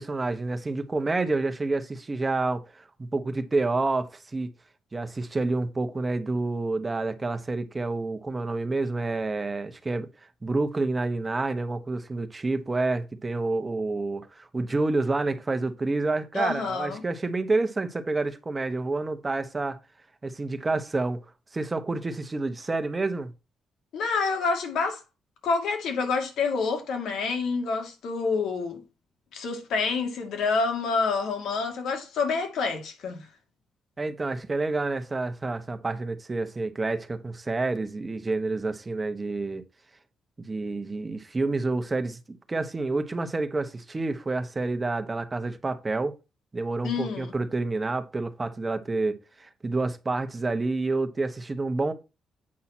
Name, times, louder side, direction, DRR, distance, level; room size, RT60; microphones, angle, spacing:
voice 1, 0.0-4.5 4.9-10.1 10.4-19.8 20.2-21.2 21.5-23.3 34.0-39.6 40.4-46.2 46.5-51.9, right 3 dB, 20° right, 1.0 m, -28 dB
voice 2, 16.3-17.0 23.9-25.0 25.4-28.8 29.3-33.3 46.8-47.3, left 4 dB, 85° left, 2.4 m, -28 dB
8.6 x 5.5 x 4.3 m
cardioid pair, 140°, 0 cm